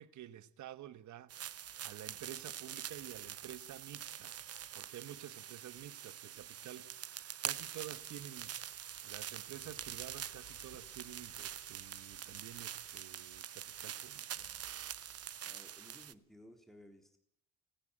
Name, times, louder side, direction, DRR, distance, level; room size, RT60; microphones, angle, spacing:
voice 1, 0.0-14.5, right 12 dB, 70° right, 1.3 m, -51 dB
sound 1, 1.3-16.1, right 10 dB, 55° right, 1.0 m, -45 dB
Explosion, 9.5-13.9, left 5 dB, 65° left, 3.6 m, -64 dB
voice 2, 15.4-17.2, equal, ahead, 3.7 m, -58 dB
29.5 x 10.5 x 8.9 m
cardioid pair, 90°, 30 cm